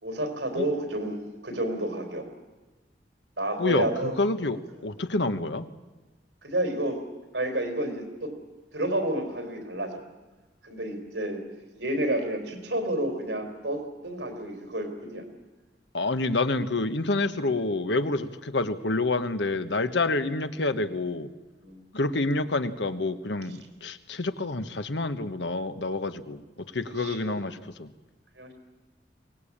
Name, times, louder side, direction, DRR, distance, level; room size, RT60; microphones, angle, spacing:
voice 1, 0.0-2.3 3.4-4.1 6.4-7.0 7.3-8.3 8.7-10.0 10.6-11.4 11.8-15.3 21.6-21.8 27.0-27.4 28.4-28.5, right 1 dB, 80° right, 5 dB, 4.2 m, -30 dB
voice 2, 3.6-5.7 15.9-21.3 21.9-27.9, left 2 dB, 85° left, 11 dB, 1.2 m, -28 dB
23.0 x 19.0 x 8.7 m, 1.2 s
head